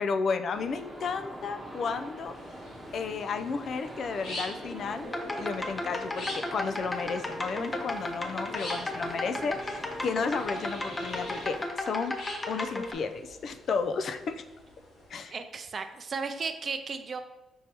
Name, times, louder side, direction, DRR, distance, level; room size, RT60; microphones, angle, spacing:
voice 1, 0.0-2.3 2.9-12.2 12.5-14.4 15.1-15.3, left 5 dB, 55° left, 9 dB, 0.4 m, -33 dB
sound 1, 0.5-11.7, equal, 5° right, 1.1 m, -44 dB
sound 2, 2.3-15.2, left 1 dB, 75° left, 1.3 m, -46 dB
sound 3, 5.0-12.9, left 2 dB, 25° left, 0.7 m, -34 dB
voice 2, 15.3-17.2, right 5 dB, 45° right, 8 dB, 0.4 m, -35 dB
5.3 x 3.3 x 2.9 m, 1.1 s
cardioid pair, 90°, 0 cm